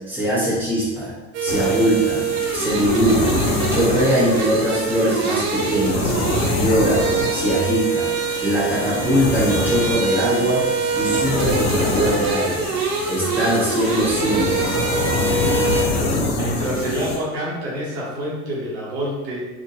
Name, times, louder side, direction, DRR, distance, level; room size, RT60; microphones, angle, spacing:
voice 1, 0.1-1.1 1.4-2.2 2.5-3.4 3.7-6.1 6.5-8.1 8.4-10.7 10.9-12.6 13.1-14.7, equal, 5° right, -9 dB, 1.2 m, -21 dB
sound 1, 1.3-15.8, right 4 dB, 40° right, 0.6 m, -24 dB
sound 2, 1.5-17.2, left 2 dB, 45° left, 0.7 m, -26 dB
voice 2, 16.3-19.5, equal, 60° right, -6 dB, 1.1 m, -27 dB
2.8 x 2.6 x 2.8 m, 1.2 s
figure-of-eight pair, 70°, 37 cm